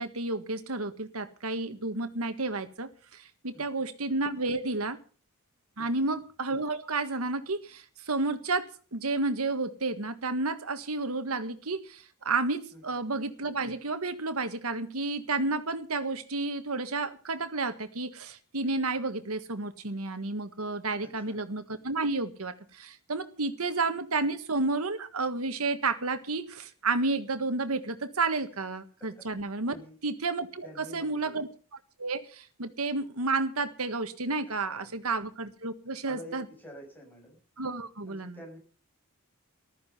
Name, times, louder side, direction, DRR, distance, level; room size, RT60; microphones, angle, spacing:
voice 1, 0.0-5.0 5.8-29.7 30.0-30.7 30.9-31.5 32.0-36.4 37.6-38.4, right 3 dB, 85° right, 1.6 m, -31 dB
voice 2, 3.5-3.9 5.8-6.1 12.7-13.1 21.0-21.4 29.2-29.3 29.6-29.9 30.6-31.4 34.5-34.9 36.1-37.4 38.0-38.6, equal, 10° left, 6.9 m, -49 dB
14.5 x 13.0 x 5.6 m
head